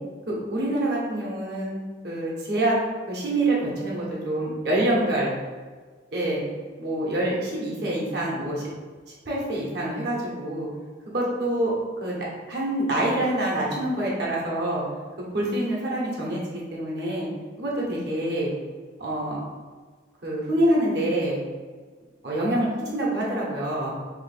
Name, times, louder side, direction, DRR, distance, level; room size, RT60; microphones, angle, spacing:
voice 1, 0.3-1.7 2.0-2.8 3.1-5.3 6.1-6.4 6.8-8.6 9.2-10.7 11.1-11.7 12.0-14.8 15.3-17.3 17.6-18.5 19.0-19.4 20.2-21.4 22.2-23.9, right 1 dB, 60° right, -4 dB, 0.9 m, -26 dB
3.1 x 2.9 x 4.2 m, 1.5 s
head